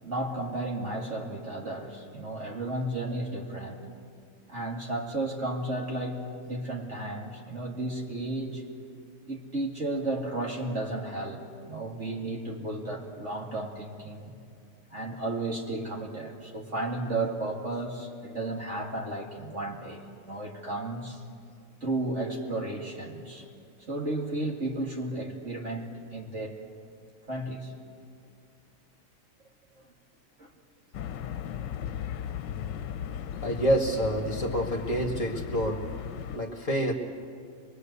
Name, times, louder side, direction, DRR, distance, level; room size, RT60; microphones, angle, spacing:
voice 1, 0.0-3.8 4.5-8.6 9.3-14.3 14.9-21.2 21.8-23.5 23.9-26.6 27.3-27.7 30.4-30.5 36.3-36.4, right 2 dB, 40° right, 0 dB, 2.7 m, -33 dB
sound 1, 30.9-36.4, left 9 dB, 85° left, 1.4 m, -36 dB
voice 2, 33.4-36.9, right 1 dB, 45° left, 3 dB, 2.2 m, -28 dB
24.5 x 22.0 x 8.2 m, 2.3 s
omnidirectional pair, 1.9 m